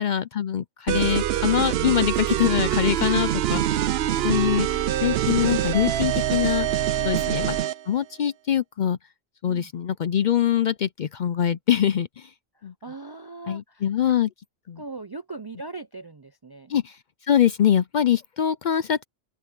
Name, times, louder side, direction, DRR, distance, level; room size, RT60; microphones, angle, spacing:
voice 1, 0.0-3.8 4.2-7.6 7.9-9.0 9.4-12.3 12.6-12.7 13.5-14.3 14.7-14.8 16.7-17.0 17.3-19.0, left 10 dB, 55° left, 0.5 m, -23 dB
sound 1, 0.9-7.8, right 11 dB, 70° right, 0.8 m, -24 dB
voice 2, 4.2-5.2 7.0-7.4 9.4-9.7 12.6-13.8 14.8-16.7, right 3 dB, 35° right, 0.4 m, -40 dB
open air
omnidirectional pair, 1.1 m